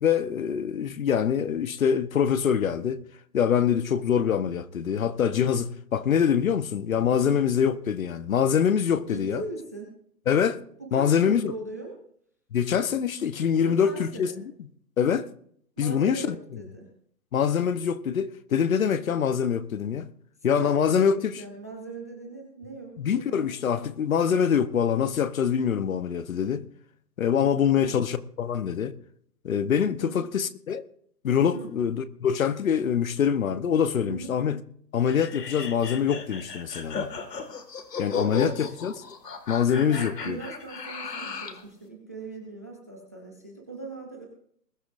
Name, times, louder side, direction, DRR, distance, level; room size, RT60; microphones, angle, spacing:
voice 1, 0.0-3.0 3.3-9.4 10.3-10.6 10.9-11.5 12.5-14.4 15.0-15.3 15.8-16.4 17.3-20.1 20.4-21.4 23.0-26.6 27.2-28.9 29.4-30.8 31.2-34.6 34.9-37.1 38.0-38.9 39.5-40.4, left 8 dB, 55° left, 1.0 m, -24 dB
voice 2, 7.1-7.5 9.1-9.9 10.8-12.0 13.6-14.4 15.8-16.9 20.6-23.5 27.6-28.0 30.0-30.2 31.5-31.7 34.0-34.3 38.1-38.8 39.9-44.3, right 3 dB, 10° right, 0.5 m, -40 dB
sound 1, 35.1-41.6, left 6 dB, 70° left, 2.2 m, -35 dB
21.0 x 12.5 x 2.6 m
hypercardioid pair, 145°, 50 cm